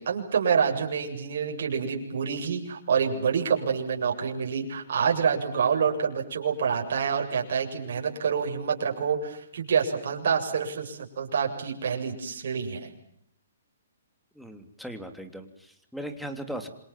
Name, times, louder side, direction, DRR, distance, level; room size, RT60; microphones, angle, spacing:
voice 1, 0.0-12.9, right 6 dB, 65° right, 1 dB, 7.8 m, -27 dB
voice 2, 14.3-16.7, right 1 dB, ahead, 7 dB, 3.2 m, -38 dB
28.0 x 26.0 x 7.6 m, 0.70 s
hypercardioid pair, 150°, 0 cm